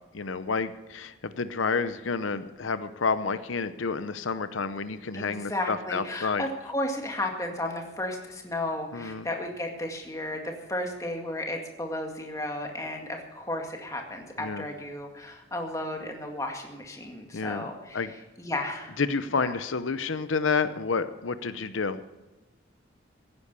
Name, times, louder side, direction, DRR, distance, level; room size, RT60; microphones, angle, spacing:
voice 1, 0.1-6.4 8.9-9.3 14.4-14.6 17.3-17.6 17.9-18.1 19.0-22.0, left 4 dB, 85° left, 12 dB, 0.7 m, -29 dB
voice 2, 5.1-18.9 19.3-19.5, left 1 dB, 15° left, 2 dB, 2.0 m, -34 dB
16.5 x 9.9 x 6.8 m, 1.1 s
head